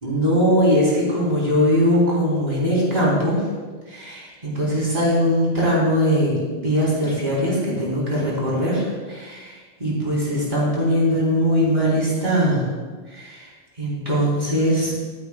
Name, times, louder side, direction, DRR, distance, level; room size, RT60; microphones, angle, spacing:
voice 1, 0.0-3.4 3.9-9.5 9.8-12.7 13.1-13.5 13.8-14.9, equal, 40° right, -6 dB, 3.4 m, -21 dB
13.5 x 9.2 x 2.2 m, 1.4 s
omnidirectional pair, 1.1 m